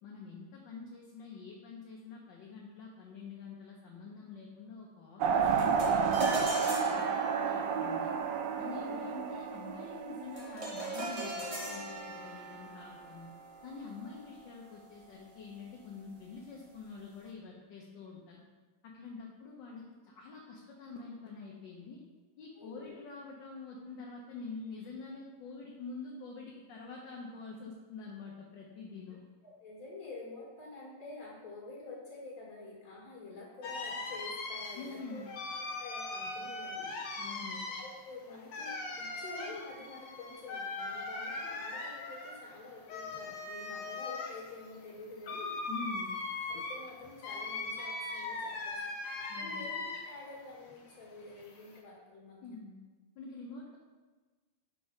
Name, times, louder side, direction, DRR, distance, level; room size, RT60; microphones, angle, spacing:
voice 1, 0.0-7.1 7.3-8.1 8.6-13.3 13.6-18.4 18.8-22.0 22.4-29.2 34.7-35.3 37.2-37.7 45.7-46.2 49.3-49.7 52.4-52.8 53.1-53.8, left 4 dB, 65° left, -2 dB, 1.4 m, -46 dB
sound 1, 5.2-11.1, right 6 dB, 75° right, 1.1 m, -31 dB
sound 2, 5.6-15.1, right 1 dB, 30° right, 0.6 m, -41 dB
voice 2, 22.6-22.9 29.4-35.2 35.8-36.9 37.8-45.5 46.5-48.7 49.3-52.6, left 3 dB, 45° left, -4 dB, 2.1 m, -48 dB
sound 3, 33.6-50.3 50.6-51.8, left 3 dB, 85° left, 1.7 m, -40 dB
5.8 x 4.0 x 5.1 m, 1.3 s
omnidirectional pair, 2.3 m